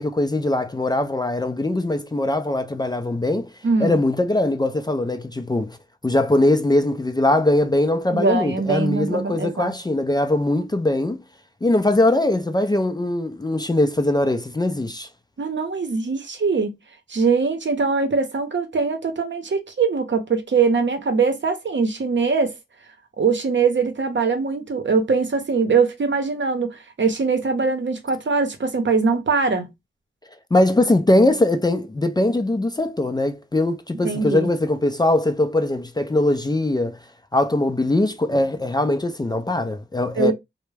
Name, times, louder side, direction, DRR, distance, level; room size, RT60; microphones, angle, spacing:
voice 1, 0.0-3.5 3.8-5.8 6.0-11.2 11.6-15.1 30.5-37.0 37.3-40.3, left 1 dB, 20° left, 0.4 m, -21 dB
voice 2, 3.6-4.0 8.1-9.7 15.4-16.7 17.1-22.5 23.2-29.7 34.0-34.5 40.2-40.3, right 4 dB, 60° right, 0.7 m, -22 dB
2.2 x 2.1 x 3.2 m
cardioid pair, 45°, 21 cm